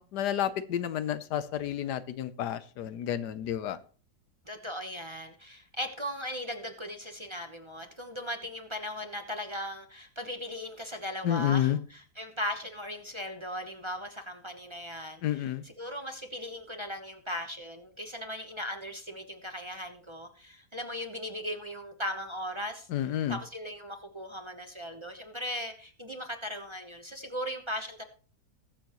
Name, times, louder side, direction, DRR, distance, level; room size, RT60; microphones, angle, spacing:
voice 1, 0.0-3.8 11.2-11.8 15.2-15.6 22.9-23.4, left 11 dB, 90° left, 14 dB, 1.4 m, -30 dB
voice 2, 4.5-22.9 23.3-28.0, equal, 20° right, 5 dB, 0.9 m, -38 dB
20.5 x 7.1 x 3.0 m, 0.38 s
omnidirectional pair, 1.7 m